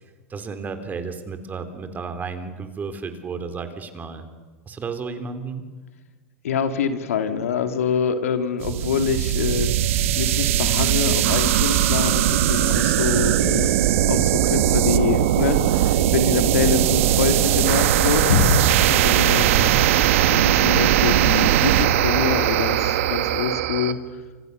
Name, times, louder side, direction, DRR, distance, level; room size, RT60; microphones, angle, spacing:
voice 1, 0.3-4.2 4.7-5.7 19.3-19.8, right 4 dB, 20° right, 8 dB, 3.6 m, -32 dB
voice 2, 6.4-9.7 10.2-13.7 14.1-20.0 20.3-24.0, left 6 dB, 85° left, 8 dB, 2.8 m, -25 dB
sound 1, 8.6-23.9, right 12 dB, 70° right, 1.8 m, -19 dB
29.5 x 26.5 x 6.8 m, 1.4 s
hypercardioid pair, 115°, 8 cm